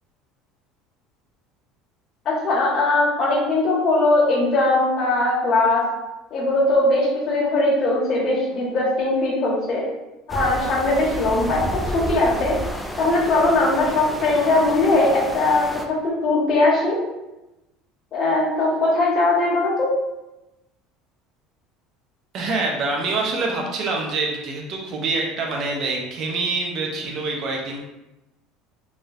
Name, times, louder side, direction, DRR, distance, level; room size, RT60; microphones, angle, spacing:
voice 1, 2.2-5.9 6.3-9.8 10.3-12.6 13.0-17.0 18.1-20.0, left 2 dB, 40° left, -5 dB, 1.5 m, -20 dB
sound 1, 10.3-15.9, equal, 5° left, 0.4 m, -31 dB
voice 2, 22.3-27.8, right 3 dB, 50° right, 0 dB, 0.9 m, -25 dB
4.1 x 3.0 x 2.6 m, 0.99 s
cardioid pair, 125°, 0 cm